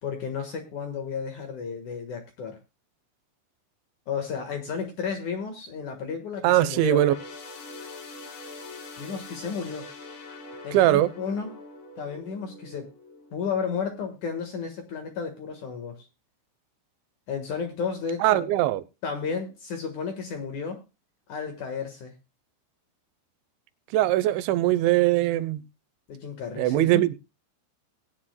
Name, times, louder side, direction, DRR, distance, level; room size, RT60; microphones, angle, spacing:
voice 1, 0.0-2.6 4.1-7.0 9.0-9.9 10.6-11.5 12.0-12.9 13.3-16.0 17.3-18.5 19.0-20.8 21.3-22.1 26.1-27.0, left 6 dB, 60° left, 6 dB, 2.3 m, -33 dB
voice 2, 6.4-7.1 10.7-11.1 18.2-18.8 23.9-25.6 26.6-27.2, right 15 dB, 90° right, 15 dB, 3.1 m, -21 dB
sound 1, 6.8-14.5 14.9-15.1 16.0-16.1, left 3 dB, 75° left, 4.9 m, -44 dB
20.0 x 9.9 x 2.2 m, 0.27 s
omnidirectional pair, 5.1 m